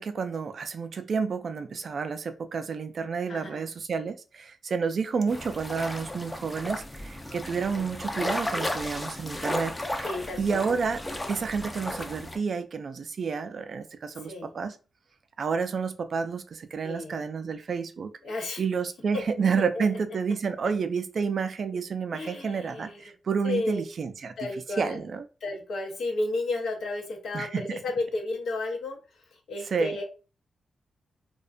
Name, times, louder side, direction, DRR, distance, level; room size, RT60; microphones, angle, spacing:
voice 1, 0.0-10.0 10.4-11.0 11.3-14.7 15.4-18.1 18.6-24.3 24.8-25.2 27.3-27.6 29.7-29.9, right 5 dB, 65° right, 0.3 m, -30 dB
voice 2, 3.3-3.7 7.7-8.0 10.0-10.8 14.2-14.5 16.8-17.3 18.2-18.6 19.1-19.2 19.7-19.9 22.1-23.1 23.4-23.8 24.4-25.0 25.4-30.0, left 2 dB, 80° left, 0.6 m, -33 dB
sound 1, 5.3-12.4, left 1 dB, 20° left, 0.4 m, -34 dB
2.4 x 2.1 x 2.4 m
cardioid pair, 55°, 0 cm